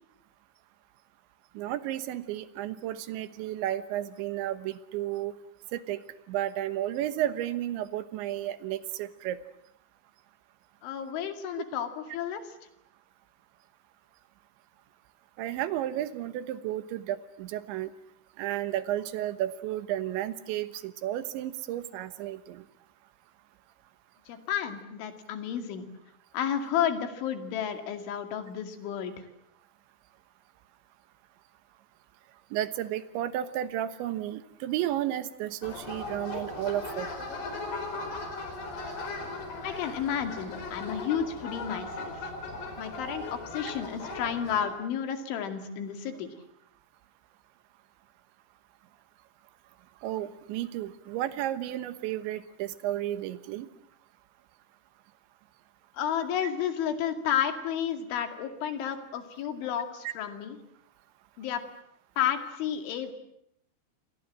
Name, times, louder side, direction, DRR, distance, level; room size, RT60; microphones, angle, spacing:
voice 1, 1.6-5.3 5.7-6.0 6.3-9.4 15.4-17.9 18.4-22.6 32.5-37.1 50.0-53.7 60.1-60.2, right 12 dB, 80° right, 12 dB, 3.5 m, -32 dB
voice 2, 10.8-12.5 24.3-25.9 26.3-29.1 39.6-42.3 42.8-46.3 55.9-60.6 61.4-61.6 62.2-63.1, left 9 dB, 90° left, 7 dB, 4.8 m, -31 dB
sound 1, 35.6-44.6, left 2 dB, 60° left, 6.6 m, -38 dB
29.0 x 24.0 x 7.7 m, 0.75 s
omnidirectional pair, 5.3 m